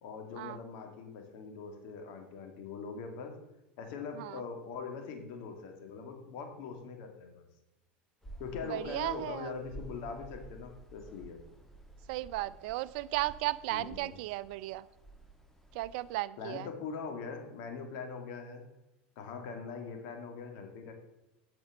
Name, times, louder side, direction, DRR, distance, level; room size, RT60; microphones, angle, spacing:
voice 1, 0.0-3.4 3.8-7.5 8.4-11.4 13.7-14.1 16.4-18.6 19.2-20.9, left 5 dB, 65° left, 4 dB, 2.3 m, -42 dB
sound 1, 8.2-16.2, right 2 dB, 5° left, 1.4 m, -52 dB
voice 2, 8.7-9.5 12.1-14.8 15.7-16.7, right 17 dB, 70° right, 16 dB, 0.5 m, -35 dB
8.8 x 6.2 x 6.6 m, 0.99 s
hypercardioid pair, 100°, 5 cm